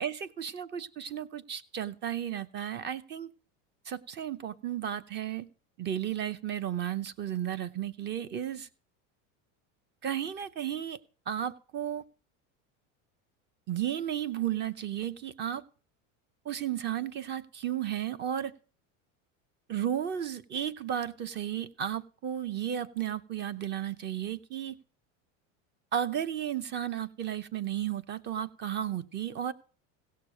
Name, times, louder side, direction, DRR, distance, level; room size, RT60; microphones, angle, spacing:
voice 1, 0.0-3.3 3.9-5.5 5.8-8.7 10.0-11.0 11.3-12.0 13.7-15.6 16.4-18.5 19.7-24.8 25.9-29.5, right 10 dB, 30° right, 16 dB, 0.8 m, -33 dB
17.0 x 6.7 x 6.5 m, 0.39 s
cardioid pair, 155°, 37 cm